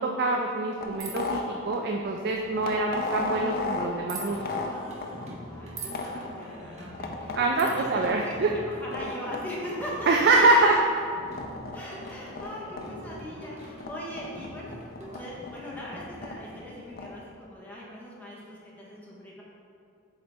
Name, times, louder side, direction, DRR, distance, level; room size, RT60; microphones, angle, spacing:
voice 1, 0.0-4.4 6.1-6.2 7.3-8.5 10.1-10.8, right 2 dB, 55° right, 1 dB, 0.4 m, -24 dB
sound 1, 0.8-17.2, left 3 dB, 45° left, 0.5 m, -37 dB
sound 2, 1.0-1.3 4.1-4.3 5.8-6.0 7.6-7.8, right 5 dB, 80° right, 1.1 m, -38 dB
Singing, 4.2-16.6, equal, 35° right, 1.0 m, -45 dB
voice 2, 5.5-10.1 11.7-14.8 15.1-19.4, left 1 dB, 10° left, -6 dB, 1.2 m, -40 dB
7.9 x 3.8 x 3.5 m, 2.4 s
head